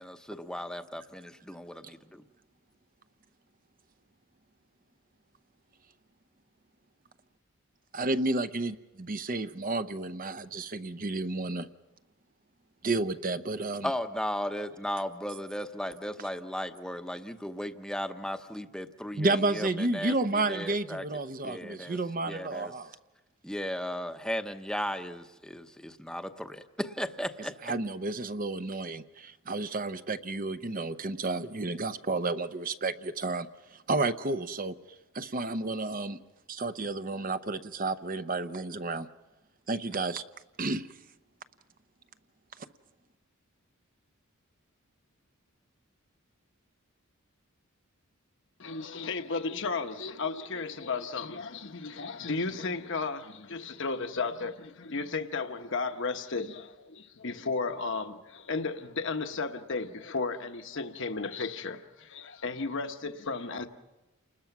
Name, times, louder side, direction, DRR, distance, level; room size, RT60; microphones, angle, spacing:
voice 1, 0.0-2.2 13.8-21.1 21.4-22.0 22.3-22.7 23.4-27.7, equal, 5° left, 0.9 m, -36 dB
voice 2, 7.9-11.7 12.8-13.9 19.2-23.0 27.6-34.7 35.1-36.2 36.5-39.1 39.7-40.2 40.6-40.9 42.6-42.7, right 2 dB, 40° right, 0.7 m, -31 dB
voice 3, 48.6-63.7, left 4 dB, 60° left, 1.1 m, -34 dB
29.5 x 20.5 x 6.0 m
head